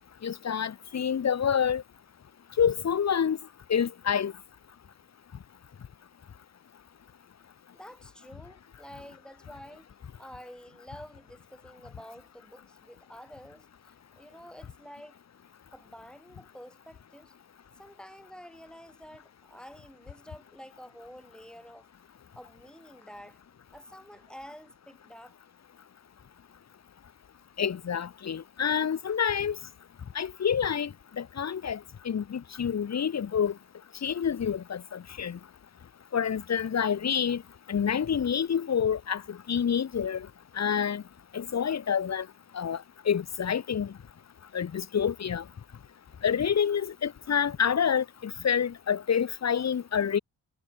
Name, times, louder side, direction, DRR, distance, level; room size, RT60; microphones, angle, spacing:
voice 1, 0.2-1.8 2.6-3.4 3.7-4.3 27.6-29.6 30.1-31.8 32.0-33.5 34.0-35.4 36.1-37.4 37.7-40.3 40.6-41.0 41.3-42.3 42.5-43.9 44.5-45.4 46.2-50.2, left 7 dB, 40° left, 0.9 m, -28 dB
voice 2, 7.7-9.9 10.2-15.2 15.7-17.3 17.8-21.9 22.3-23.4 23.7-25.4, equal, ahead, 4.1 m, -49 dB
cardioid pair, 55°, 41 cm